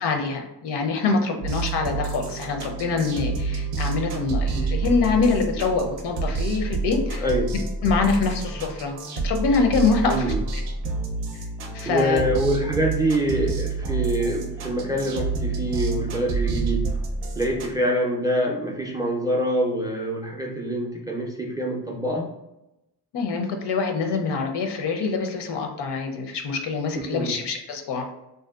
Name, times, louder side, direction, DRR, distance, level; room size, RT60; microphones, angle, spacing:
voice 1, 0.0-7.3 7.8-9.0 9.2-10.6 11.7-12.2 23.1-28.1, left 4 dB, 75° left, 4 dB, 0.6 m, -25 dB
sound 1, 1.4-17.8, right 3 dB, 90° right, 0.5 m, -28 dB
voice 2, 7.2-7.5 10.0-10.4 11.8-16.9 17.4-22.3 27.0-27.3, equal, 10° right, 0 dB, 0.3 m, -25 dB
2.7 x 2.2 x 2.3 m, 0.92 s
cardioid pair, 75°, 42 cm